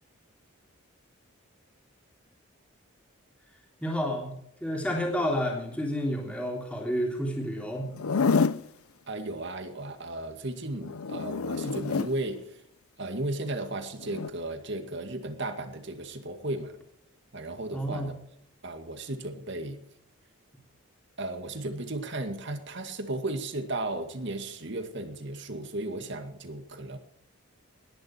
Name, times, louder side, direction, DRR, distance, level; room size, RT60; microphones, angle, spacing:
voice 1, 3.8-4.3 4.6-7.9 17.7-18.1, equal, 5° left, -1 dB, 3.4 m, -30 dB
Zipper (clothing), 7.9-8.7 10.8-12.1 14.0-14.3, left 5 dB, 80° left, 0.6 m, -27 dB
voice 2, 9.1-12.6 13.0-16.8 17.3-18.1 18.6-19.8 21.2-27.0, right 2 dB, 55° right, 7 dB, 2.0 m, -35 dB
19.5 x 10.5 x 4.6 m, 0.75 s
head